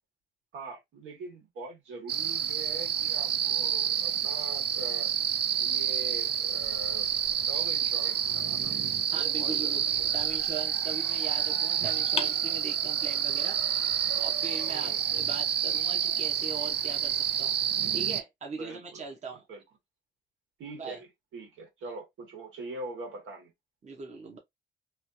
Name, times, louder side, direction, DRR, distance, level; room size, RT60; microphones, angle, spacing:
voice 1, 0.5-5.2 5.6-7.1 7.5-8.8 9.1-10.1 14.7-15.0 18.6-19.0 19.5-19.6 20.6-23.5, right 3 dB, 80° right, 1.7 m, -43 dB
sound 1, 2.1-18.2, right 9 dB, 55° right, 0.5 m, -29 dB
voice 2, 9.1-9.8 10.1-13.6 14.2-17.6 17.9-19.4 20.7-21.0 23.8-24.4, right 4 dB, 35° right, 1.0 m, -40 dB
sound 2, 9.5-10.6 12.2-13.2, left 5 dB, 30° left, 0.6 m, -39 dB
3.2 x 2.5 x 2.7 m
cardioid pair, 90°, 20 cm